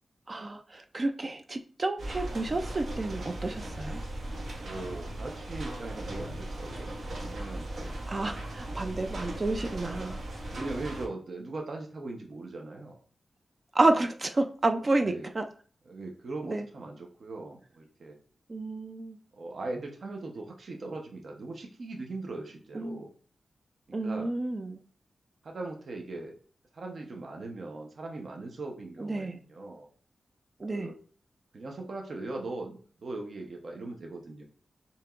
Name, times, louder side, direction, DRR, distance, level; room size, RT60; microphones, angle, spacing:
voice 1, 0.3-4.0 8.1-10.2 13.7-15.4 16.4-16.7 18.5-19.2 22.7-23.0 23.9-24.8 29.0-29.4 30.6-30.9, right 2 dB, 30° right, 6 dB, 0.3 m, -30 dB
sound 1, 2.0-11.1, right 1 dB, 75° right, 1.4 m, -38 dB
voice 2, 4.6-6.9 7.2-7.7 10.5-13.0 15.0-15.3 15.9-18.2 19.3-23.1 24.0-24.3 25.4-26.3 26.7-29.9 30.7-31.0 31.5-34.4, right 2 dB, 55° right, 2 dB, 0.7 m, -39 dB
6.8 x 2.9 x 2.4 m, 0.42 s
wide cardioid pair, 165°, 0 cm